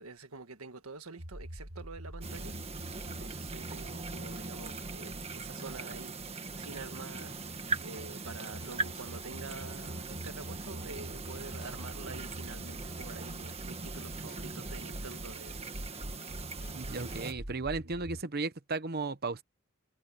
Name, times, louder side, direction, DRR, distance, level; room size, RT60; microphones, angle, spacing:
voice 1, 0.0-2.5 3.0-15.7, right 3 dB, 85° right, 1.7 m, -47 dB
sound 1, 1.2-18.2, equal, 65° right, 3.2 m, -46 dB
sound 2, 2.2-17.3, right 3 dB, 30° right, 1.6 m, -41 dB
sound 3, 6.8-17.4, left 3 dB, 65° left, 5.6 m, -60 dB
voice 2, 16.7-19.4, right 3 dB, 45° right, 0.9 m, -35 dB
head